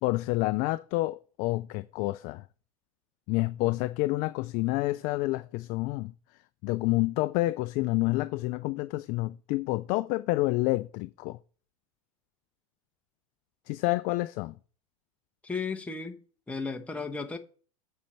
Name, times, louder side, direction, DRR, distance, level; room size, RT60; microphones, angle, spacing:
voice 1, 0.0-2.4 3.3-6.1 6.6-11.4 13.7-14.5, left 20 dB, 45° left, 0.4 m, -28 dB
voice 2, 15.4-16.2 16.5-17.4, left 4 dB, 5° left, 1.0 m, -34 dB
8.5 x 4.3 x 5.7 m
supercardioid pair, 120°, 19 cm